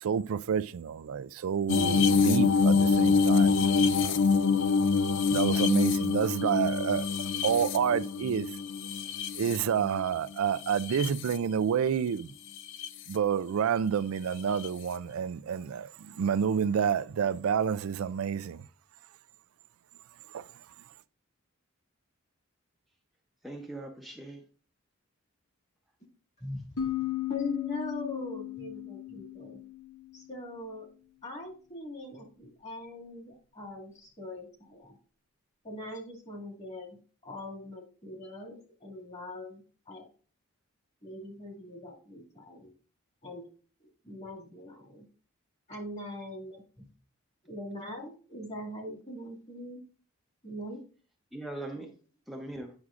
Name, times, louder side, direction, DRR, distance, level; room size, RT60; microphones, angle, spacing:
voice 1, 0.0-4.2 5.3-7.1 7.4-8.5 9.4-12.3 13.1-18.6 20.3-20.5, right 7 dB, 75° right, 0.4 m, -29 dB
sound 1, 1.7-10.0 10.6-11.4 12.6-12.9 14.6-14.7, left 4 dB, 60° left, 0.4 m, -25 dB
voice 2, 23.4-24.4 51.3-51.9 52.3-52.7, right 2 dB, ahead, 0.7 m, -40 dB
sound 2, 26.8-30.4, left 12 dB, 90° left, 0.9 m, -36 dB
voice 3, 27.3-29.6 30.1-30.9 31.2-35.0 35.6-37.0 37.2-40.1 41.0-42.7 43.2-43.5 43.8-45.1 45.7-46.9 47.5-49.8 50.4-50.8, left 1 dB, 35° left, 2.2 m, -41 dB
9.6 x 6.0 x 2.5 m
head